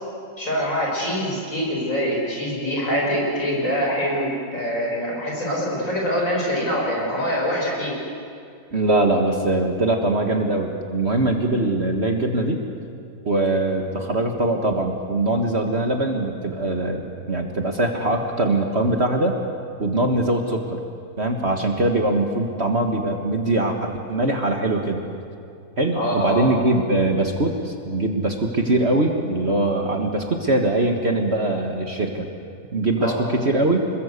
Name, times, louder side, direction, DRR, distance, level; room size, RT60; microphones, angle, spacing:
voice 1, 0.4-7.9 26.0-26.5 33.0-33.2, equal, 50° left, -3 dB, 6.8 m, -24 dB
voice 2, 8.7-12.6 13.3-17.0 17.3-19.4 19.8-20.8 21.2-25.1 25.8-32.3 32.7-33.9, right 2 dB, 40° right, 3 dB, 1.8 m, -22 dB
26.5 x 21.0 x 8.3 m, 2.4 s
omnidirectional pair, 1.8 m